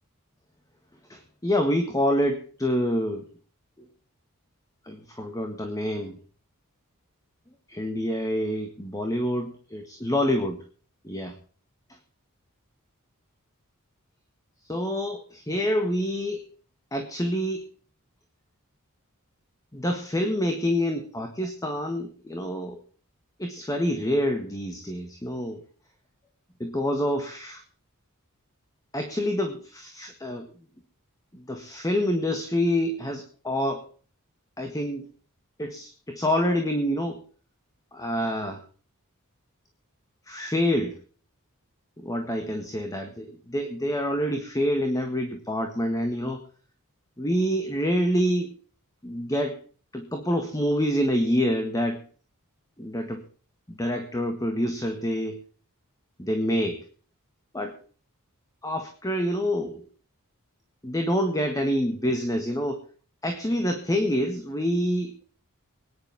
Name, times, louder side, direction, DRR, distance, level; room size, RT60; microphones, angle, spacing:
voice 1, 1.1-3.2 3.8-3.9 4.8-6.2 7.7-10.6 11.0-11.3 14.7-16.4 16.9-17.7 19.7-22.8 23.4-25.6 26.6-27.6 28.9-30.5 31.3-33.8 34.6-35.1 35.6-37.2 37.9-38.6 40.3-41.0 42.0-46.4 47.2-48.5 49.0-49.6 49.9-52.0 52.8-53.2 53.7-55.4 56.2-56.9 57.5-57.8 58.6-59.9 60.8-62.8 63.2-65.1, equal, 15° left, 5 dB, 1.7 m, -27 dB
24.5 x 10.5 x 3.6 m, 0.41 s
head